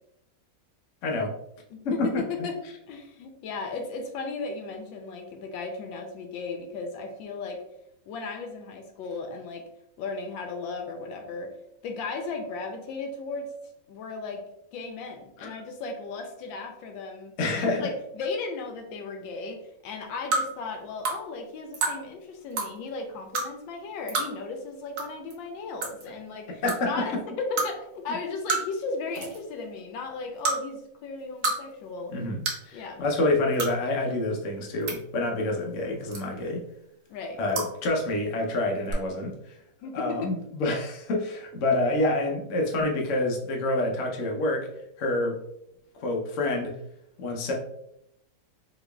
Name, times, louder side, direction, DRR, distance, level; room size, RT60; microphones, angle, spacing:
voice 1, 1.0-1.3 1.8-2.3 15.4-15.5 17.4-17.9 26.6-27.2 32.1-36.6 37.4-39.6 39.9-44.7 45.0-45.4 46.0-46.8 47.2-47.5, left 2 dB, 60° left, 0 dB, 0.8 m, -27 dB
voice 2, 1.7-2.6 2.9-7.6 8.1-9.6 10.0-11.5 11.8-13.5 13.9-14.4 14.7-17.3 17.6-32.1 32.7-33.0 37.1-37.4 39.8-40.3, left 4 dB, 85° left, 4 dB, 1.4 m, -35 dB
sound 1, 20.3-20.4 21.0-21.2 21.7-21.9 22.5-22.7 23.3-23.5 24.1-24.3 25.0-25.1 25.3-25.4 25.8-26.0 26.7-26.8 27.6-27.7 28.5-28.8 29.1-29.4 30.4-30.6 31.2-31.6 31.8-31.9 32.5-32.6 33.5-33.7 34.6-35.0 36.1-36.5 37.5-37.7 38.9-39.0, right 3 dB, 65° right, 1.2 m, -27 dB
3.8 x 3.1 x 2.3 m, 0.79 s
omnidirectional pair, 2.0 m